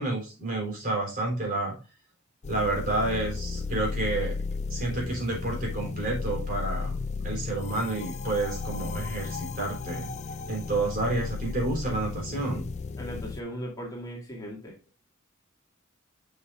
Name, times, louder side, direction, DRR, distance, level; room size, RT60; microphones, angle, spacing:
voice 1, 0.0-1.8 2.5-4.3 4.7-7.0 7.2-10.1 10.5-12.7, right 2 dB, 45° right, -2 dB, 3.4 m, -30 dB
sound 1, 2.4-13.4, left 4 dB, 35° left, 0.4 m, -34 dB
voice 2, 12.9-15.0, equal, 20° left, -2 dB, 2.0 m, -38 dB
7.0 x 6.6 x 2.4 m, 0.31 s
head